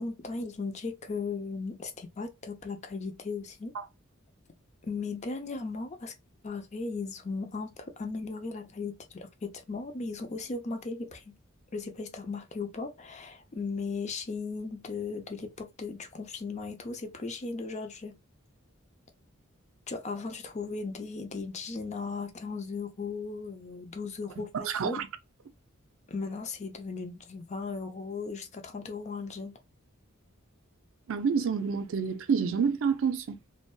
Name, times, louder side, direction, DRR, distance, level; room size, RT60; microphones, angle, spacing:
voice 1, 0.0-3.7 4.8-6.1 6.4-11.3 11.7-18.1 19.9-25.0 26.1-29.6, left 4 dB, 35° left, 0.5 m, -37 dB
voice 2, 24.5-25.1 31.1-33.4, right 6 dB, 65° right, 0.4 m, -28 dB
2.6 x 2.2 x 2.2 m
head